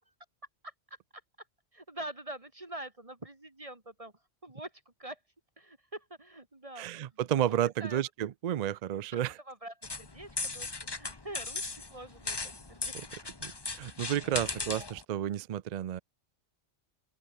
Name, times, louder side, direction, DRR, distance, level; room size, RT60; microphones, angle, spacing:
voice 1, 1.7-4.1 4.4-4.7 5.0-5.2 5.6-8.0 9.1-9.2 9.5-12.9 14.5-14.7, right 1 dB, 30° right, 2.1 m, -45 dB
voice 2, 6.8-9.4 13.4-13.5 13.8-16.0, right 11 dB, 55° right, 0.4 m, -31 dB
sound 1, 9.8-15.0, left 3 dB, 20° left, 1.1 m, -38 dB
open air
omnidirectional pair, 1.2 m